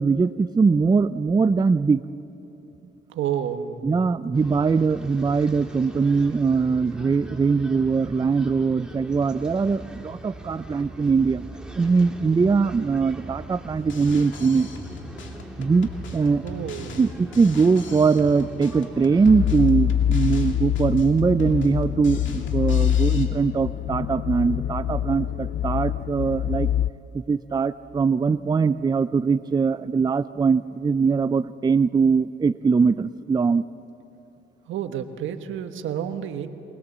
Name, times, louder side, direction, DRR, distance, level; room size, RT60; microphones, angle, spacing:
voice 1, 0.0-2.0 3.8-11.4 11.8-14.7 15.6-16.4 17.0-26.7 27.1-33.6, right 5 dB, 20° right, 13 dB, 0.4 m, -21 dB
voice 2, 3.1-3.8 16.4-17.1 34.7-36.5, right 9 dB, 75° right, 8 dB, 1.3 m, -30 dB
sound 1, 4.3-19.7, right 1 dB, 5° right, 2.6 m, -41 dB
Drum kit, 13.8-23.3, left 4 dB, 70° left, 2.4 m, -41 dB
sound 2, 19.2-26.9, left 10 dB, 50° left, 0.4 m, -25 dB
23.0 x 20.5 x 7.4 m, 2.8 s
cardioid pair, 90°, 20 cm